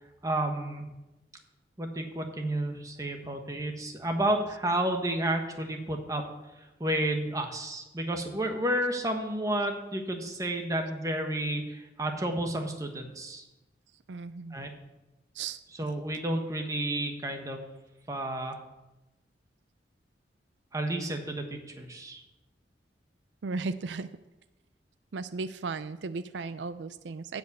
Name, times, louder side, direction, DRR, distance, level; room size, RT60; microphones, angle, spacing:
voice 1, 0.2-0.9 1.8-6.2 6.8-13.4 14.5-14.7 15.8-17.6 18.1-18.6 20.7-22.2, right 1 dB, 20° right, 4 dB, 1.3 m, -31 dB
voice 2, 14.1-14.6 15.3-15.6 23.4-24.1 25.1-27.4, right 4 dB, 80° right, 13 dB, 0.4 m, -35 dB
12.5 x 5.3 x 8.3 m, 1.0 s
head